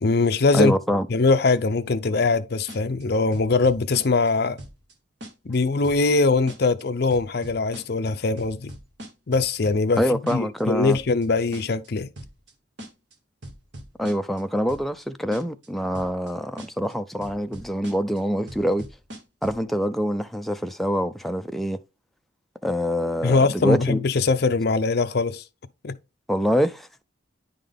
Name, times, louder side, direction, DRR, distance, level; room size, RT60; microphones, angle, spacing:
voice 1, 0.0-0.7 1.1-4.6 5.5-8.7 9.3-10.0 10.3-12.1 23.2-25.4 25.8-25.9, left 3 dB, 50° left, 0.5 m, -22 dB
voice 2, 0.5-1.1 10.0-11.0 14.0-18.8 19.4-21.8 22.6-24.0 26.3-27.0, equal, ahead, 0.3 m, -25 dB
sound 1, 2.7-3.0 3.3-4.3 4.6-4.9 5.2-5.6 5.8-6.2 6.5-6.8 7.1-8.1 8.4-10.0 10.3-10.6 10.9-11.3 11.5-11.9 12.2-12.5 12.8-13.1 13.4-14.4 14.7-15.0 15.3-15.7 15.9-16.3 16.6-16.9 17.2-18.2 18.5-19.6, equal, 60° right, 1.3 m, -40 dB
10.0 x 3.8 x 3.4 m
head